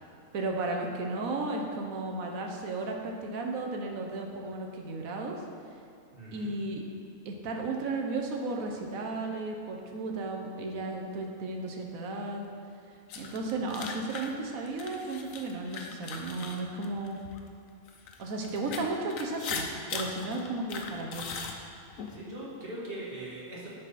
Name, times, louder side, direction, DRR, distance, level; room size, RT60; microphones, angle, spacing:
voice 1, 0.3-5.4 6.3-6.8 7.2-12.4 13.1-17.2 18.2-21.3, right 2 dB, 85° right, 1 dB, 1.3 m, -34 dB
voice 2, 6.1-6.5 18.7-18.8 22.1-23.7, right 1 dB, 45° right, -7 dB, 1.7 m, -41 dB
sound 1, 13.1-17.4 17.9-22.2, left 5 dB, 80° left, 1.1 m, -39 dB
10.0 x 4.1 x 4.1 m, 2.4 s
omnidirectional pair, 1.4 m